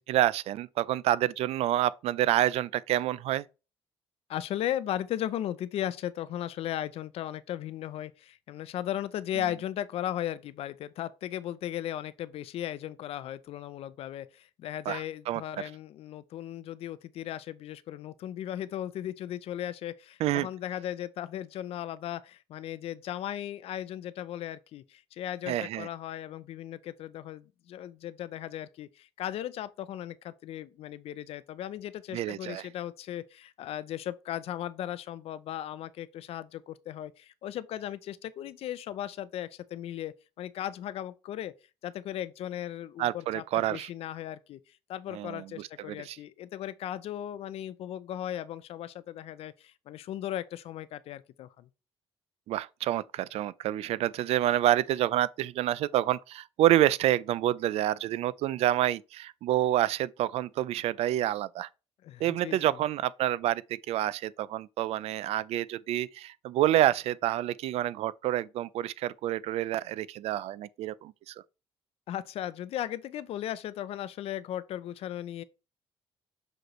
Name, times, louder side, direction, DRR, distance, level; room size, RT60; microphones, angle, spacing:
voice 1, 0.1-3.4 14.9-15.4 20.2-20.5 25.5-25.9 32.1-32.7 43.0-43.9 45.1-46.2 52.5-61.7 62.2-63.6 63.9-71.3, right 13 dB, 70° right, 0.4 m, -28 dB
voice 2, 4.3-41.5 41.8-44.6 44.9-51.7 62.0-62.8 72.1-75.4, left 11 dB, 60° left, 0.5 m, -37 dB
6.2 x 5.0 x 3.1 m
cardioid pair, 135°, 11 cm